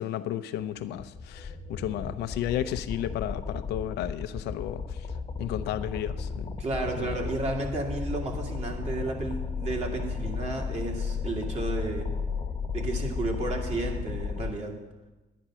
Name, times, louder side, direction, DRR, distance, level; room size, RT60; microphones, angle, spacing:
voice 1, 0.0-5.1 5.4-6.6 7.0-7.2, left 11 dB, 80° left, 0.7 m, -33 dB
sound 1, 0.8-14.5, left 5 dB, 30° left, 1.1 m, -34 dB
voice 2, 6.6-12.1 12.7-14.8, right 2 dB, 40° right, 2.4 m, -32 dB
10.5 x 10.0 x 6.3 m
cardioid pair, 110°, 17 cm